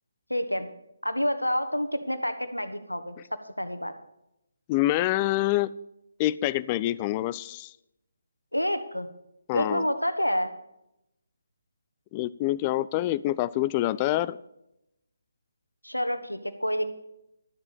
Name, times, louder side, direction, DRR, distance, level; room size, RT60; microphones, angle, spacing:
voice 1, 0.3-0.7 1.0-3.9 8.5-9.1 9.5-10.5 15.8-16.9, equal, 90° left, 9 dB, 1.4 m, -28 dB
voice 2, 4.7-5.7 6.2-7.7 9.5-9.8 12.1-14.4, left 15 dB, 20° left, 17 dB, 0.4 m, -26 dB
12.5 x 12.0 x 4.9 m, 0.84 s
figure-of-eight pair, 145°, 0 cm